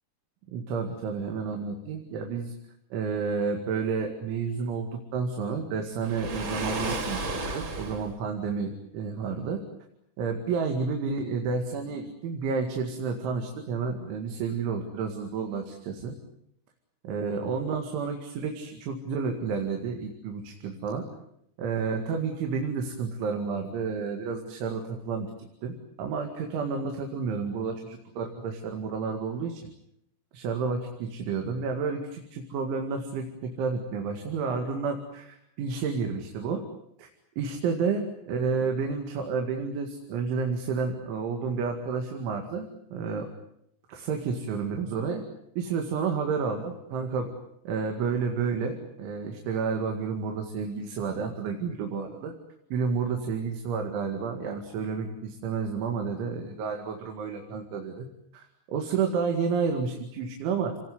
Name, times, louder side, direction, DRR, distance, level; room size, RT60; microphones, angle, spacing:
voice 1, 0.5-2.5 2.9-9.6 10.2-16.1 17.0-21.0 21.6-25.3 25.6-29.6 30.3-36.6 37.0-37.1 37.4-43.3 43.9-45.2 45.6-47.3 47.7-52.3 52.7-58.1 58.3-60.8, right 5 dB, 90° right, 4 dB, 4.7 m, -30 dB
Waves surf, 6.0-8.1, right 2 dB, 30° right, 3.0 m, -33 dB
29.5 x 19.5 x 9.7 m, 0.75 s
omnidirectional pair, 5.3 m